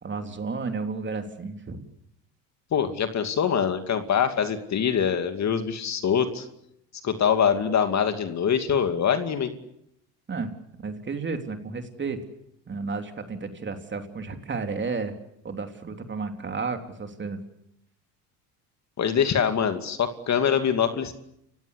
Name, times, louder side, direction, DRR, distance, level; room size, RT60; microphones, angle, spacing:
voice 1, 0.0-1.8 10.3-10.5 10.8-12.2 12.7-15.1 15.4-17.4, right 4 dB, 25° right, 6 dB, 3.3 m, -32 dB
voice 2, 2.7-6.4 7.0-9.5 19.0-21.1, left 7 dB, 40° left, 8 dB, 2.5 m, -24 dB
29.5 x 17.0 x 8.2 m, 0.77 s
supercardioid pair, 95°, 42 cm